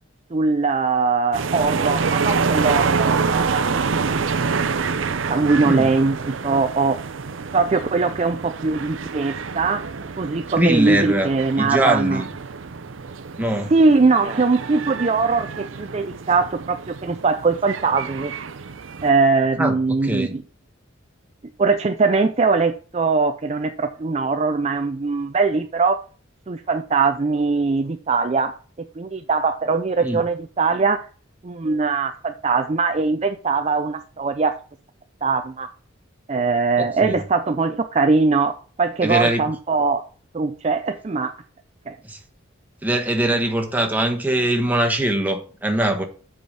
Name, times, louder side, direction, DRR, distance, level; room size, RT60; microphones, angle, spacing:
voice 1, 0.3-3.7 5.3-7.0 7.5-9.9 10.2-12.2 13.7-18.3 19.0-20.4 21.6-26.0 26.5-28.5 28.8-31.1 31.4-34.6 35.2-35.7 36.3-40.0 40.3-41.3 41.9-42.0, right 4 dB, 30° right, 0.4 m, -21 dB
sound 1, 1.3-19.1, right 5 dB, 75° right, 0.6 m, -27 dB
voice 2, 10.6-11.3 11.6-12.3 13.4-13.7 19.6-20.3 30.0-30.2 36.8-37.2 39.0-39.4 42.0-42.2 42.8-46.0, right 1 dB, 10° right, 1.2 m, -22 dB
7.9 x 5.0 x 5.5 m
head